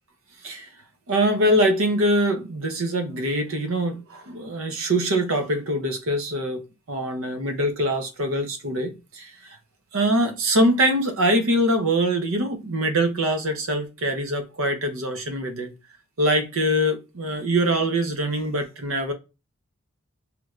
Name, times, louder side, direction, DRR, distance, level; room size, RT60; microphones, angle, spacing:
voice 1, 1.1-6.6 6.9-9.3 9.9-15.7 16.2-19.1, right 1 dB, 70° right, 0.7 m, -23 dB
3.2 x 3.1 x 2.4 m
head